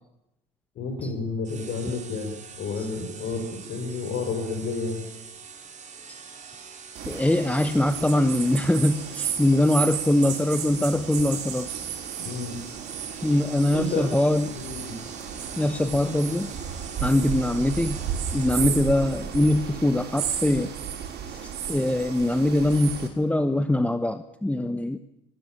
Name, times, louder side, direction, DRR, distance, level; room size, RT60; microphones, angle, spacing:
voice 1, 0.8-5.1 12.2-12.6 13.7-14.1 14.5-15.0, left 3 dB, 55° left, 3 dB, 5.7 m, -31 dB
sound 1, 1.4-19.0, right 6 dB, 35° right, 4.6 m, -44 dB
sound 2, 6.9-23.1, right 8 dB, 55° right, 6.4 m, -33 dB
voice 2, 7.1-11.7 12.7-12.8 13.2-14.6 15.6-16.5 17.0-18.0 18.3-20.7 21.3-25.0, left 1 dB, 5° left, 10 dB, 1.3 m, -23 dB
24.0 x 20.0 x 9.0 m, 0.88 s
hypercardioid pair, 70°, 21 cm